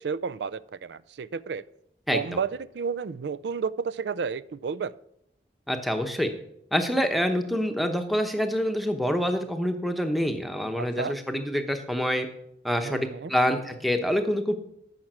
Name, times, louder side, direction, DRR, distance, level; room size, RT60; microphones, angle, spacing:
voice 1, 0.0-1.6 2.1-2.5 2.7-4.9 10.8-11.2 12.8-13.3, right 6 dB, 80° right, 18 dB, 0.4 m, -31 dB
voice 2, 5.7-6.3 6.7-12.3 12.6-14.5, equal, ahead, 6 dB, 0.9 m, -26 dB
13.5 x 5.9 x 6.1 m, 0.76 s
head